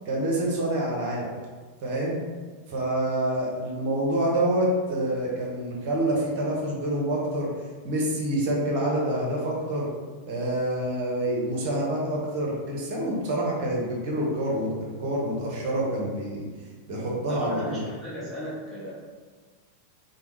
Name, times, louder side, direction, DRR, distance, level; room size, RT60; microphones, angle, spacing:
voice 1, 0.1-1.2 1.8-2.2 2.7-7.5 7.8-9.9 10.3-16.4 16.9-17.8, right 1 dB, 45° right, -2 dB, 0.9 m, -27 dB
voice 2, 17.3-18.9, equal, 10° right, -9 dB, 1.3 m, -36 dB
3.3 x 2.2 x 3.2 m, 1.5 s
figure-of-eight pair, 90°, 0 cm